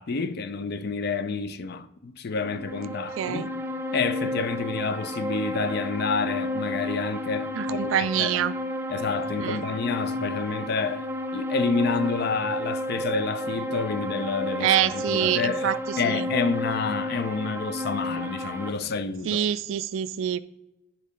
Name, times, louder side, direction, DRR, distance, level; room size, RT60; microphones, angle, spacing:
voice 1, 0.0-3.5 3.9-8.4 8.9-11.1 11.3-19.4, left 4 dB, 50° left, 0.4 m, -29 dB
sound 1, 2.4-18.7, left 1 dB, 10° right, 0.5 m, -32 dB
voice 2, 3.2-3.5 7.5-8.5 9.3-9.6 14.6-16.3 19.3-20.4, right 10 dB, 75° right, 0.3 m, -26 dB
9.5 x 3.7 x 5.1 m
head